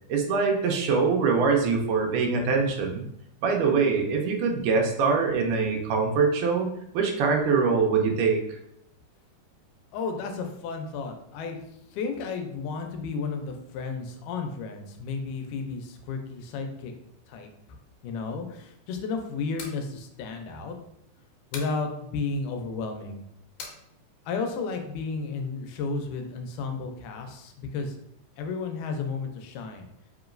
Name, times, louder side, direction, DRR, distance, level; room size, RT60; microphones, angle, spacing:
voice 1, 0.1-3.1 3.4-6.7 6.9-8.4, right 5 dB, 85° right, 2 dB, 2.1 m, -23 dB
voice 2, 9.9-11.6 11.9-16.9 17.3-17.8 18.0-20.8 21.5-23.2 24.3-28.0 28.4-29.9, left 4 dB, 90° left, 5 dB, 2.2 m, -33 dB
sound 1, 19.5-19.8 21.5-21.8 23.6-23.8, left 4 dB, 75° left, 2.0 m, -40 dB
4.9 x 3.0 x 2.5 m, 0.75 s
omnidirectional pair, 3.6 m